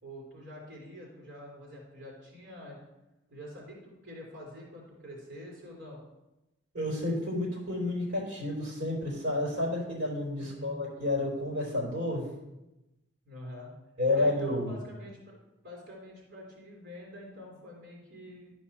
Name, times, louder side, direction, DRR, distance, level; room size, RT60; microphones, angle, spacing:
voice 1, 0.0-2.8 3.3-6.0 10.4-10.7 13.3-13.7 14.1-15.4 15.6-18.5, equal, 60° right, -3 dB, 3.5 m, -46 dB
voice 2, 6.7-12.2 14.0-14.7, left 2 dB, 75° right, -3 dB, 3.5 m, -30 dB
12.0 x 4.6 x 4.3 m, 0.96 s
head